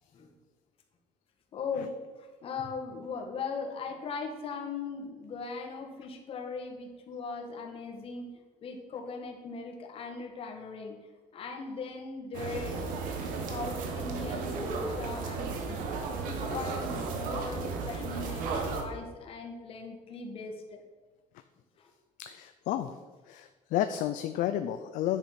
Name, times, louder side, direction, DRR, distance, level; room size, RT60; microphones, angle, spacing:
voice 1, 1.5-8.3 8.6-11.0 11.3-12.9 13.2-15.9 16.2-20.8 21.8-21.9, left 4 dB, 40° left, 2 dB, 1.8 m, -39 dB
sound 1, 12.3-18.8, right 4 dB, 80° right, 1.9 m, -34 dB
voice 2, 22.2-23.0 23.3-25.2, left 11 dB, 70° left, 9 dB, 0.6 m, -31 dB
10.0 x 7.6 x 5.9 m, 1.4 s
cardioid pair, 150°, 14 cm